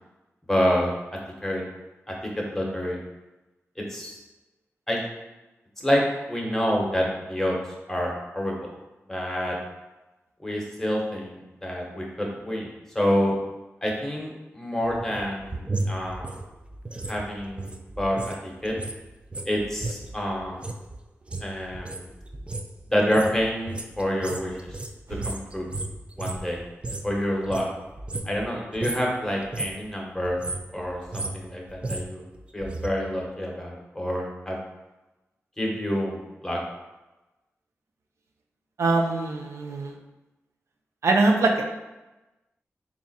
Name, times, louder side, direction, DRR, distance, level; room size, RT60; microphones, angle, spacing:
voice 1, 0.5-0.9 1.4-1.6 2.1-3.0 3.9-4.2 4.9-5.0 5.8-7.6 7.9-8.6 9.1-9.6 10.4-13.4 13.8-15.6 15.9-16.3 17.1-18.7 19.5-20.7 21.4-22.1 22.9-24.6 25.2-25.7 26.2-26.6 27.0-27.7 28.2-30.4 30.7-32.2 32.5-34.6 35.6-36.6, equal, 10° left, -2 dB, 0.9 m, -27 dB
sound 1, 14.8-18.4 18.6-27.1 27.4-28.5 28.7-29.1 29.4-29.9 30.2-32.9 33.2-33.3, right 2 dB, 25° right, 0.3 m, -34 dB
voice 2, 38.8-39.9 41.0-41.8, right 3 dB, 85° right, 2 dB, 0.4 m, -23 dB
3.6 x 2.4 x 4.0 m, 1.1 s
wide cardioid pair, 85°, 5 cm